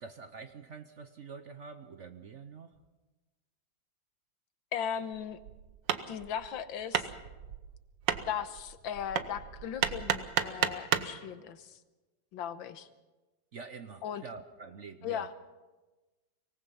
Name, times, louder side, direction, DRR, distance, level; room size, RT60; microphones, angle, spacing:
voice 1, 0.0-2.8 13.5-15.3, right 5 dB, 55° right, 9 dB, 0.9 m, -46 dB
voice 2, 4.7-5.4 6.1-7.1 8.3-11.8 12.3-12.9 14.0-14.2 15.0-15.3, left 8 dB, 85° left, 11 dB, 1.7 m, -37 dB
Hammer, 5.1-11.2, right 9 dB, 70° right, 1.6 m, -33 dB
24.0 x 19.0 x 5.6 m, 1.2 s
omnidirectional pair, 2.1 m